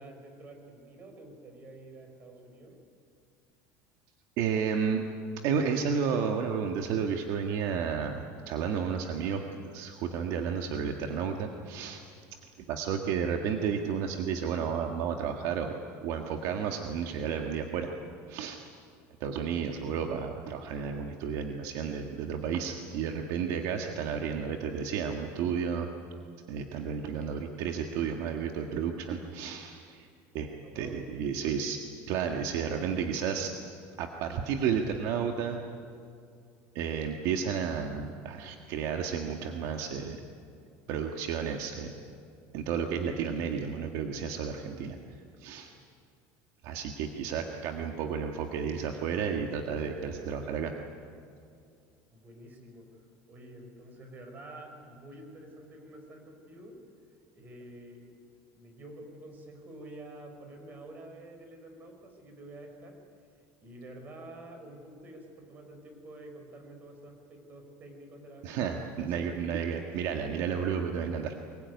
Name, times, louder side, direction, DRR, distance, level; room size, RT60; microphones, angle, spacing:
voice 1, 0.0-2.8 18.4-18.6 30.6-31.6 46.7-46.9 52.1-53.0 53.3-56.8 57.3-58.3 58.5-63.0 63.6-68.5 68.9-69.3, right 1 dB, 25° right, 4 dB, 4.9 m, -48 dB
voice 2, 4.4-5.0 5.4-9.4 9.7-12.0 12.7-15.7 16.0-17.9 18.3-18.6 19.2-25.9 26.5-30.1 30.3-30.5 30.7-31.8 32.1-33.5 34.0-35.6 36.7-40.2 40.9-41.9 42.5-45.0 45.4-45.7 46.6-50.7 68.4-71.3, right 7 dB, 55° right, 3 dB, 1.7 m, -32 dB
24.5 x 22.0 x 9.6 m, 2.4 s
cardioid pair, 170°, 7 cm